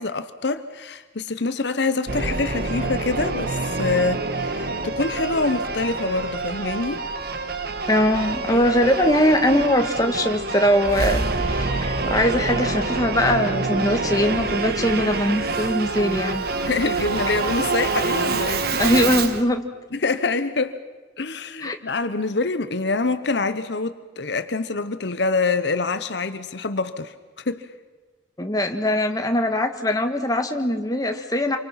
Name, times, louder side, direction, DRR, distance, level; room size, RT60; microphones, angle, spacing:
voice 1, 0.0-7.0 8.5-8.7 16.6-18.6 19.9-20.8 21.2-27.7, left 3 dB, 65° left, 11 dB, 1.0 m, -25 dB
Singing / Musical instrument, 2.1-19.4, right 3 dB, 55° right, 1.3 m, -26 dB
voice 2, 7.9-16.4 18.7-19.6 21.6-21.7 28.4-31.6, left 1 dB, 20° left, 5 dB, 1.5 m, -21 dB
28.0 x 24.5 x 5.8 m, 1.2 s
head